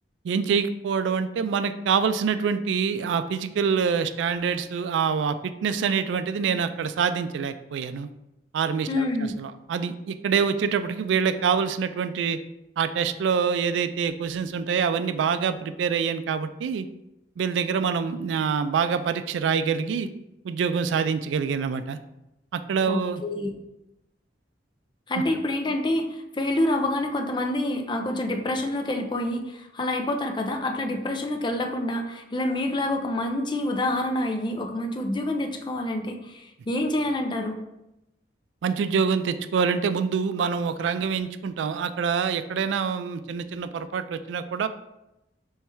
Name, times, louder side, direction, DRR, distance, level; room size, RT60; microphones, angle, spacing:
voice 1, 0.2-8.1 8.5-12.4 12.8-16.9 17.4-20.1 20.4-22.0 22.5-23.2 25.1-25.2 38.6-44.7, right 6 dB, 90° right, 11 dB, 0.3 m, -26 dB
voice 2, 8.9-9.3 22.9-23.5 25.1-37.6, left 1 dB, 25° left, 4 dB, 0.4 m, -27 dB
3.4 x 3.1 x 4.4 m, 0.89 s
head